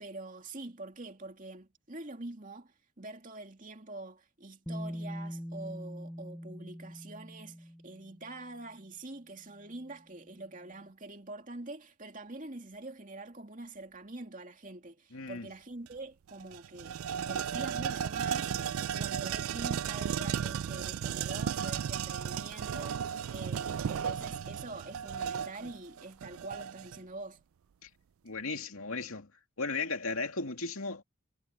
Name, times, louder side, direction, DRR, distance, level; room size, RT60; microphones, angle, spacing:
voice 1, 0.0-17.0 17.3-18.5 18.9-27.4, right 2 dB, 35° right, 2.6 m, -45 dB
Bass guitar, 4.7-8.6 9.7-9.8, equal, ahead, 0.7 m, -42 dB
voice 2, 15.1-15.5 27.8-27.9 28.2-29.3 29.6-31.0, left 3 dB, 75° left, 2.5 m, -35 dB
sound 1, 15.9-16.0 16.3-27.0, right 8 dB, 75° right, 0.4 m, -35 dB
head